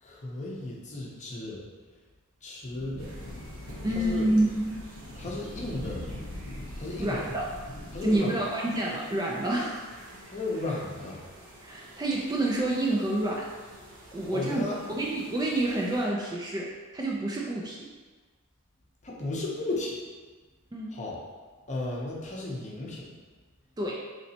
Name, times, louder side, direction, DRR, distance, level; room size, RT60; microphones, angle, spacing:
voice 1, 0.0-1.6 2.4-3.1 3.9-4.3 5.2-6.0 6.8-7.2 7.9-8.4 10.2-11.2 14.2-14.8 19.0-20.0 20.9-21.2 21.7-23.1, left 2 dB, 35° left, -3 dB, 0.7 m, -34 dB
sound 1, 2.6-8.2, left 1 dB, 85° left, 0.6 m, -41 dB
sound 2, 3.0-16.1, right 1 dB, 60° right, 0.9 m, -50 dB
voice 2, 3.8-4.8 7.0-7.5 8.0-9.8 11.6-13.5 14.1-17.9 20.7-21.0 23.8-24.0, right 1 dB, 20° right, -3 dB, 0.3 m, -28 dB
4.0 x 3.1 x 2.8 m, 1.4 s
head